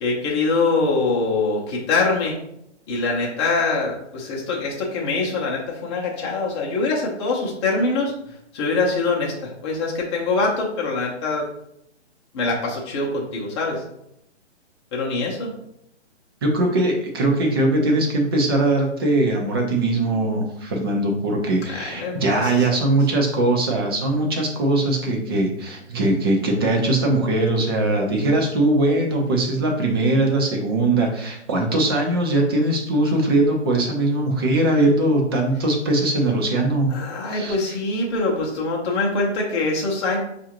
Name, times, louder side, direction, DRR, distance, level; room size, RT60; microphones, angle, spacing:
voice 1, 0.0-2.4 2.9-11.5 12.3-13.8 14.9-15.5 21.7-22.7 36.9-40.2, left 3 dB, 25° left, -3 dB, 0.7 m, -24 dB
voice 2, 16.4-36.9 37.3-37.6, right 2 dB, 20° right, 0 dB, 0.5 m, -21 dB
5.4 x 2.5 x 2.9 m, 0.78 s
hypercardioid pair, 145°, 36 cm